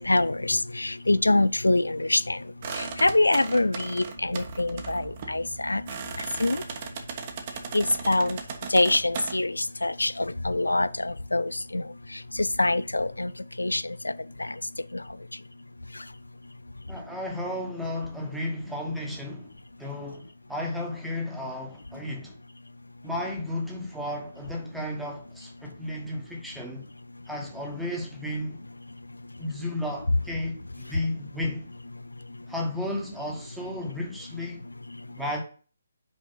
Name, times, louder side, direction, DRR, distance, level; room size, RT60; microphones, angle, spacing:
voice 1, 0.0-2.4 2.7-5.8 6.4-6.6 7.7-8.4 8.7-11.8 12.1-13.3 13.6-14.1 14.4-14.5 14.9-15.0, left 2 dB, 90° left, 0.3 m, -25 dB
sound 1, 2.6-9.3, right 6 dB, 40° right, 1.0 m, -38 dB
voice 2, 16.9-19.5 19.8-22.4 23.0-26.8 27.3-28.6 29.4-31.7 32.5-34.6 35.1-35.4, left 1 dB, ahead, 1.3 m, -33 dB
5.4 x 4.7 x 5.2 m
figure-of-eight pair, 145°, 0 cm